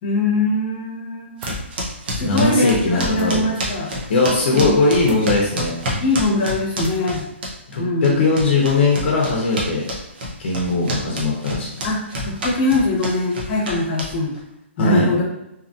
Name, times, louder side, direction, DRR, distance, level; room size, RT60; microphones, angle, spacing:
voice 1, 0.0-1.5 2.1-3.9 4.5-4.7 5.9-7.2 7.8-8.2 11.8-14.3 14.8-15.2, left 2 dB, 30° left, -3 dB, 1.0 m, -22 dB
sound 1, 1.4-1.6 3.1-3.3 5.0-5.3 6.8-7.1, right 2 dB, 20° right, 0.3 m, -38 dB
sound 2, 1.4-7.8 8.0-14.4, equal, 50° right, 0.8 m, -28 dB
voice 2, 2.2-3.4 4.1-5.8 7.7-9.8 10.4-11.7 14.8-15.1, left 3 dB, 55° left, -2 dB, 0.7 m, -19 dB
2.8 x 2.5 x 2.5 m, 0.87 s
hypercardioid pair, 160°, 7 cm